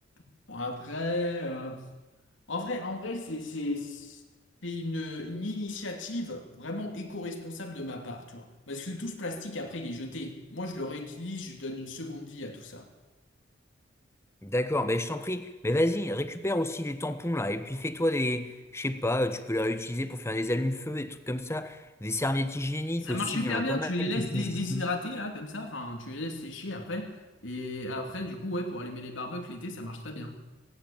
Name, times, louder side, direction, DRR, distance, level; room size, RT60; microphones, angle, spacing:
voice 1, 0.5-1.9 2.5-4.2 4.6-12.9 23.0-30.4, left 2 dB, 75° left, 3 dB, 3.0 m, -35 dB
voice 2, 14.4-24.9, left 1 dB, 15° left, 10 dB, 1.2 m, -30 dB
18.0 x 18.0 x 8.8 m, 1.2 s
head